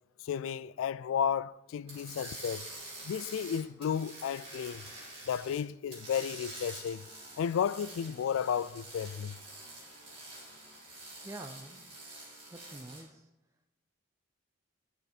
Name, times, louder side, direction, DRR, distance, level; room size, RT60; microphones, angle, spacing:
voice 1, 0.2-2.7 3.0-4.8 5.3-7.0 7.4-9.4, left 8 dB, 90° left, 0.3 m, -33 dB
sound 1, 1.9-5.6 5.9-13.0, right 2 dB, 30° right, 3.6 m, -47 dB
voice 2, 11.2-11.8 12.5-13.3, right 2 dB, 15° right, 0.4 m, -46 dB
12.0 x 5.5 x 4.3 m
head